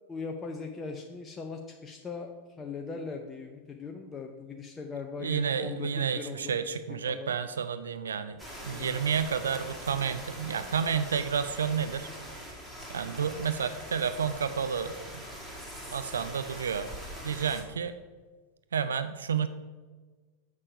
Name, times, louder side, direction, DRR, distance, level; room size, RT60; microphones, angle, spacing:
voice 1, 0.1-6.7 7.1-7.3 8.7-9.0, left 4 dB, 20° left, 3 dB, 0.6 m, -40 dB
voice 2, 5.2-12.1 12.9-15.2 15.9-16.9 17.2-17.9 18.7-19.5, right 7 dB, 70° right, 11 dB, 0.4 m, -30 dB
sound 1, 8.4-17.6, equal, 5° right, 2.2 m, -43 dB
7.2 x 6.5 x 4.8 m, 1.4 s
figure-of-eight pair, 90°, 0 cm